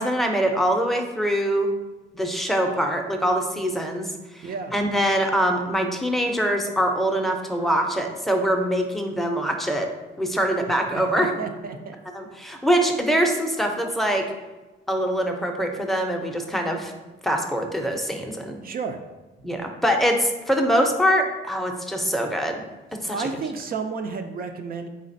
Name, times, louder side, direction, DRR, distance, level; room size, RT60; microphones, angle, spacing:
voice 1, 0.0-1.7 2.1-4.1 4.3-9.9 10.2-11.3 12.1-14.2 14.9-16.9 17.2-18.6 19.4-22.6 23.0-23.3, equal, ahead, 3 dB, 0.6 m, -23 dB
voice 2, 4.4-4.7 10.9-12.0 18.6-19.0 23.1-24.9, right 5 dB, 50° right, 6 dB, 0.4 m, -31 dB
4.1 x 3.7 x 2.6 m, 1.1 s
cardioid pair, 90°, 20 cm